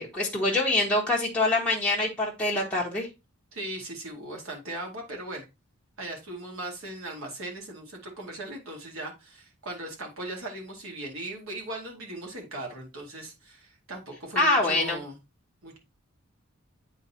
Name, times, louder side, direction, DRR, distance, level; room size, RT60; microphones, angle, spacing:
voice 1, 0.0-3.1 14.3-15.0, left 2 dB, 5° left, -4 dB, 1.2 m, -25 dB
voice 2, 3.5-5.4 6.0-15.2 15.6-15.8, right 1 dB, 70° right, 0 dB, 2.2 m, -38 dB
8.8 x 4.0 x 2.8 m, 0.25 s
head